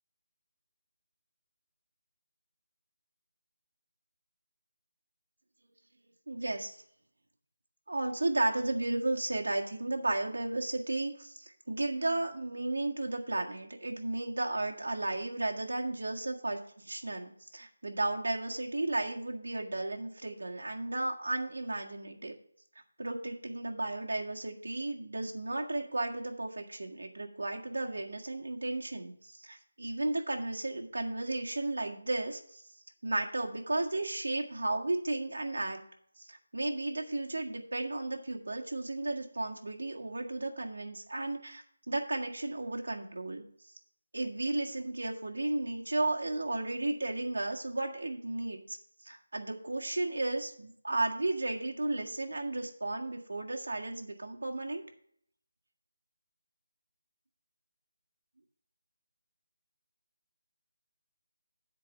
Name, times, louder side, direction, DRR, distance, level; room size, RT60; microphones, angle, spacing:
voice 1, 6.3-6.8 7.9-22.3 23.0-32.6 33.0-35.8 36.3-43.4 44.1-48.8 49.0-54.8, right 2 dB, 85° right, 1 dB, 1.7 m, -34 dB
8.4 x 4.7 x 7.5 m, 0.64 s
figure-of-eight pair, 175°, 0 cm